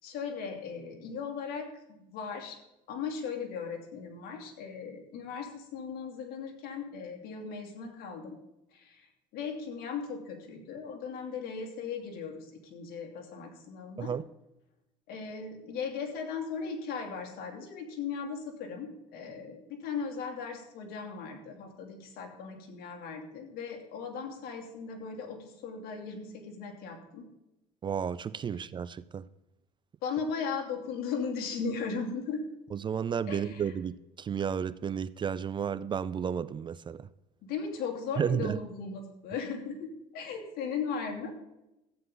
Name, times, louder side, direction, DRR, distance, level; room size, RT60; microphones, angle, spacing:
voice 1, 0.0-1.7 2.0-2.6 2.9-8.4 8.7-14.1 15.1-27.3 30.0-32.5 33.3-33.7 37.4-41.3, left 5 dB, 70° left, 2.8 m, -37 dB
voice 2, 27.8-29.3 32.7-37.1 38.2-38.6, right 7 dB, 30° right, 0.4 m, -32 dB
14.0 x 9.0 x 3.8 m
cardioid pair, 100°, 16 cm